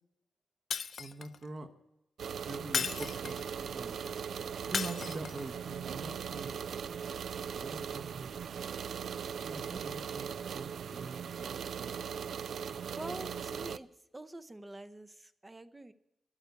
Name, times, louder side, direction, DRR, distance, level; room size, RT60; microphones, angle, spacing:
Shatter, 0.7-1.4 2.7-3.6 4.7-5.5, left 6 dB, 55° left, 0.4 m, -35 dB
voice 1, 1.0-1.7 2.4-3.9 4.6-6.6 7.6-8.3 9.4-12.1, right 3 dB, 35° right, 9 dB, 1.1 m, -44 dB
sound 1, 2.2-13.8, right 7 dB, 70° right, 0.4 m, -39 dB
voice 2, 12.9-15.9, right 1 dB, 15° right, 12 dB, 0.6 m, -46 dB
12.0 x 9.1 x 8.2 m, 0.90 s
cardioid pair, 115°, 0 cm